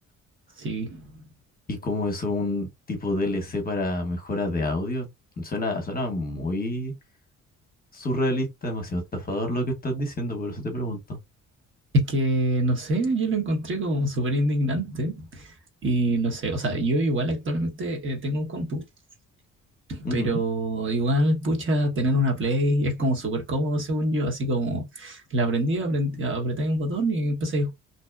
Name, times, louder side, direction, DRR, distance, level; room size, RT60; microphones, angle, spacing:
voice 1, 0.6-1.1 11.9-15.5 15.8-18.8 19.9-27.7, right 1 dB, 40° right, 1.0 m, -25 dB
voice 2, 1.7-5.1 5.4-6.9 7.9-11.2 20.0-20.4, left 1 dB, 30° left, 0.9 m, -28 dB
2.7 x 2.1 x 2.2 m
cardioid pair, 90°, 30 cm